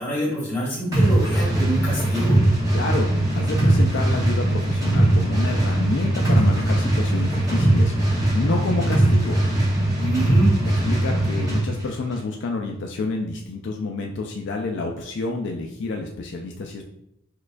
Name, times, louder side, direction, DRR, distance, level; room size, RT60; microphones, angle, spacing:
voice 1, 0.0-2.4 10.0-10.5, right 1 dB, 10° left, -7 dB, 1.3 m, -26 dB
sound 1, 0.9-11.7, right 1 dB, 15° right, 0.9 m, -20 dB
voice 2, 2.7-9.4 10.6-16.8, left 3 dB, 55° left, 2 dB, 0.3 m, -29 dB
6.3 x 2.2 x 2.5 m, 0.80 s
head